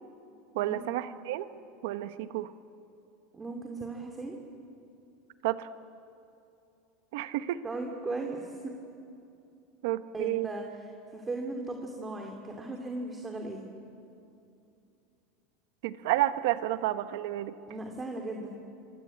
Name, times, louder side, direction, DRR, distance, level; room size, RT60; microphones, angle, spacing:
voice 1, 0.5-1.5 1.8-2.5 5.4-5.7 7.1-7.6 9.8-10.5 15.8-17.5, right 15 dB, 70° right, 11 dB, 1.3 m, -30 dB
voice 2, 3.3-4.4 7.6-8.7 10.1-10.6 11.1-13.6 17.7-18.5, right 2 dB, 15° right, 2 dB, 2.7 m, -37 dB
26.5 x 24.5 x 8.5 m, 2.7 s
supercardioid pair, 130°, 0 cm